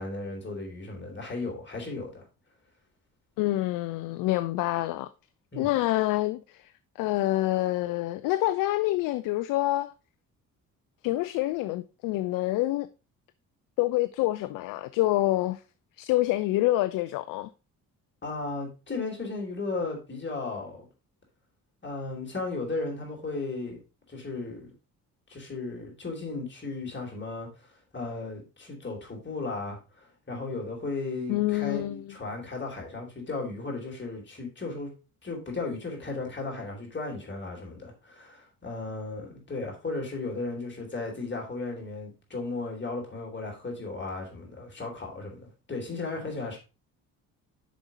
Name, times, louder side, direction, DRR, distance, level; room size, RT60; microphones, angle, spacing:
voice 1, 0.0-2.2 5.5-5.7 18.2-20.8 21.8-23.8 24.1-24.7 25.3-34.9 35.2-46.6, left 3 dB, 25° left, 3.3 m, -35 dB
voice 2, 3.4-5.1 5.6-6.7 7.0-9.9 11.0-12.9 13.8-15.6 16.0-17.5 31.3-32.1, left 17 dB, 50° left, 0.4 m, -27 dB
7.0 x 5.2 x 4.0 m
figure-of-eight pair, 45°, 46 cm